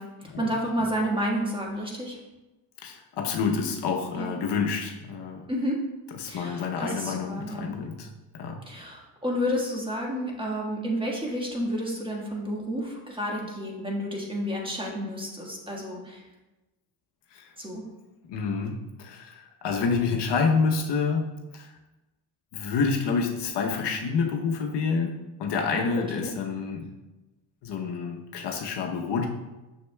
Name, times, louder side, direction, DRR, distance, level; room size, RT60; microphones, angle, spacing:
voice 1, 0.0-2.2 4.1-4.3 5.5-5.8 6.2-7.7 8.6-16.2 17.6-17.8 25.7-26.3, equal, 10° right, -1 dB, 1.5 m, -31 dB
voice 2, 2.8-5.4 6.1-8.1 8.3-8.6 17.3-17.5 18.3-21.7 22.5-26.9 27.6-29.3, left 5 dB, 70° left, 2 dB, 0.9 m, -28 dB
6.7 x 6.4 x 2.3 m, 1.1 s
cardioid pair, 80°, 42 cm